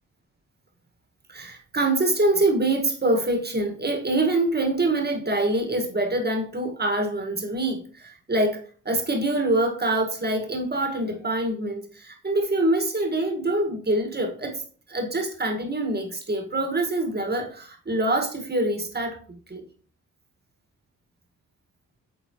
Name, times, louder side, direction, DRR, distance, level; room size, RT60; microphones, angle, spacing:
voice 1, 1.3-14.6 14.9-19.6, right 2 dB, 30° right, 3 dB, 1.8 m, -25 dB
8.1 x 3.9 x 3.1 m, 0.43 s
supercardioid pair, 55°, 34 cm